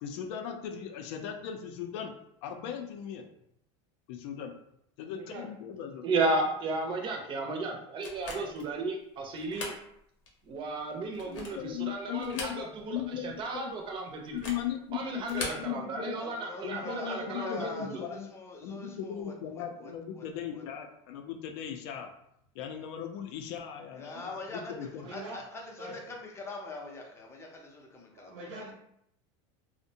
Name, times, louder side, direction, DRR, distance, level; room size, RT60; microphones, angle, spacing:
voice 1, 0.0-2.1 2.4-3.2 4.1-4.5 5.0-6.0 10.9-13.7 14.3-16.2 16.6-18.3 18.6-22.1 22.5-25.1, left 9 dB, 65° left, 5 dB, 0.5 m, -38 dB
voice 2, 6.0-9.7 10.5-14.5 14.9-18.0, right 3 dB, 30° right, 2 dB, 0.5 m, -34 dB
sound 1, 8.0-8.7 9.3-9.8 10.3-10.4 11.0-11.7 12.2-12.9 13.2-13.3 14.2-14.7 15.2-15.7, left 3 dB, 90° left, 0.8 m, -40 dB
voice 3, 16.1-20.3 20.5-20.6 23.9-28.4, left 2 dB, 15° left, 0 dB, 0.5 m, -43 dB
voice 4, 25.0-25.4 25.8-25.9 28.1-28.7, right 2 dB, 70° right, -5 dB, 0.7 m, -43 dB
2.6 x 2.1 x 2.7 m, 0.73 s
supercardioid pair, 135°, 15 cm